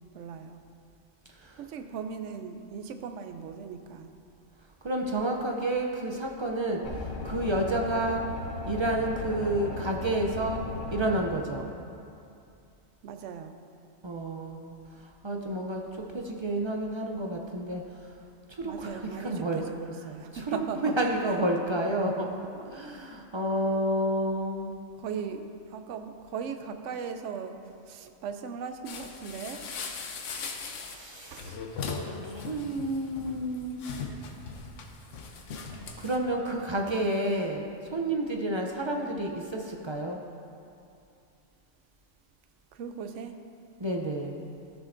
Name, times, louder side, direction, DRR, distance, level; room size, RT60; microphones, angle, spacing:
voice 1, 0.1-0.6 1.6-4.1 13.0-13.5 18.6-21.0 25.0-29.6 31.3-31.5 42.7-43.3, right 6 dB, 70° right, 7 dB, 0.9 m, -38 dB
voice 2, 4.8-6.8 7.2-8.3 8.7-10.6 10.9-11.7 14.0-17.8 18.5-19.6 20.3-24.8 30.9-31.6 32.3-34.0 36.0-40.2 43.8-44.5, right 1 dB, 50° right, 1 dB, 0.3 m, -30 dB
sound 1, 6.8-11.2, left 3 dB, 85° left, 1.5 m, -37 dB
sound 2, 28.9-36.2, left 4 dB, 70° left, 1.1 m, -39 dB
13.5 x 7.1 x 2.6 m, 2.6 s
omnidirectional pair, 1.3 m